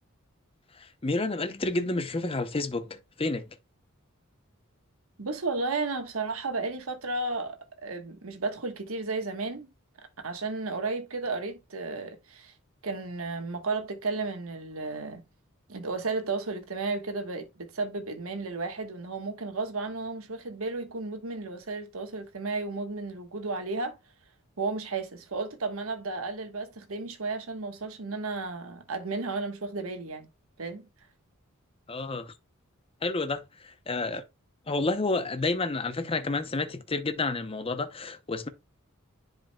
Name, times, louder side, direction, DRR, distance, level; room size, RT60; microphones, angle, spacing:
voice 1, 0.7-3.5 31.9-32.3 33.0-34.2 34.7-38.5, left 3 dB, 25° left, 0.7 m, -30 dB
voice 2, 5.2-7.6 7.8-9.7 10.2-12.5 12.8-15.2 15.7-24.0 24.6-30.3 30.6-30.9, right 3 dB, 75° right, 1.3 m, -33 dB
10.0 x 5.0 x 2.2 m
head